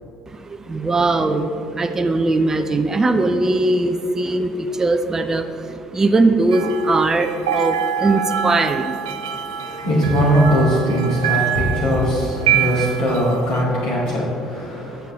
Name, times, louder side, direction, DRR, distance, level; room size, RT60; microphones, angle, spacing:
voice 1, 0.7-1.5 1.8-4.5 4.8-5.4 5.9-7.7 8.0-8.8, right 2 dB, 25° right, 7 dB, 0.6 m, -19 dB
sound 1, 6.5-13.6, right 9 dB, 85° right, 0.4 m, -25 dB
voice 2, 9.4-15.1, equal, 75° left, -9 dB, 2.2 m, -20 dB
9.9 x 7.4 x 3.5 m, 2.7 s
hypercardioid pair, 60°, 2 cm